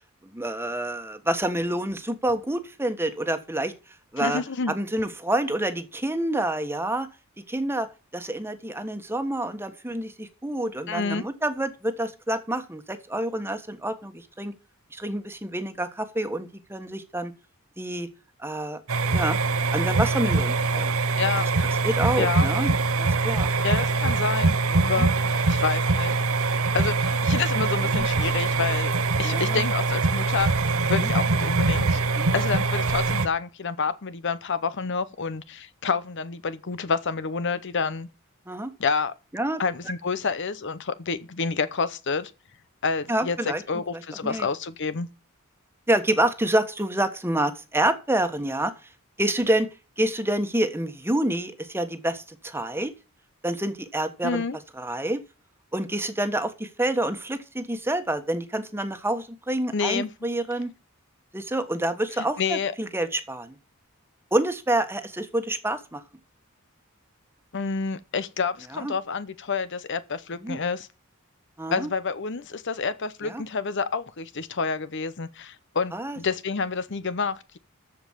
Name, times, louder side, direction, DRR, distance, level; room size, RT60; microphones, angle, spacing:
voice 1, 0.3-3.7 4.1-4.4 4.7-7.1 7.5-7.9 8.1-14.5 14.9-17.3 17.8-18.1 18.4-18.8 19.1-19.4 19.7-21.0 21.8-22.7 23.0-23.5 24.7-25.1 27.9-28.1 29.2-29.6 31.0-31.1 32.2-32.3 38.5-38.7 39.3-39.6 43.1-43.6 44.2-44.5 45.9-48.7 49.2-49.7 50.0-52.9 53.4-54.4 54.7-55.2 55.7-60.7 61.3-63.6 64.3-66.0 68.7-68.9 70.4-70.6 71.6-71.9 73.2-73.4 75.9-76.2, right 1 dB, 10° right, 1.4 m, -27 dB
voice 2, 4.2-4.7 10.9-11.2 21.2-21.5 22.2-22.5 23.6-24.6 24.8-26.2 26.7-28.9 29.2-30.5 30.9-32.0 32.3-38.1 38.8-39.1 39.6-42.3 42.8-43.4 43.7-45.1 54.2-54.6 59.7-60.1 62.2-62.7 67.5-70.9 71.7-77.6, left 5 dB, 55° left, 0.8 m, -28 dB
sound 1, 18.9-33.3, right 3 dB, 75° right, 1.0 m, -23 dB
14.0 x 5.3 x 7.3 m
head